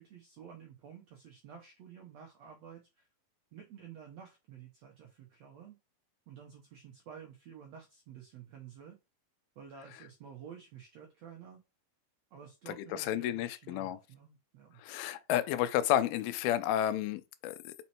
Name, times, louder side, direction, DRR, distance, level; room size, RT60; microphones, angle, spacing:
voice 1, 0.0-3.1 3.5-5.8 6.3-9.0 9.5-11.6 12.3-14.8, right 8 dB, 75° right, 1.5 m, -51 dB
voice 2, 12.7-14.0 14.8-17.7, left 12 dB, 80° left, 2.4 m, -31 dB
5.2 x 4.3 x 4.4 m
omnidirectional pair, 4.4 m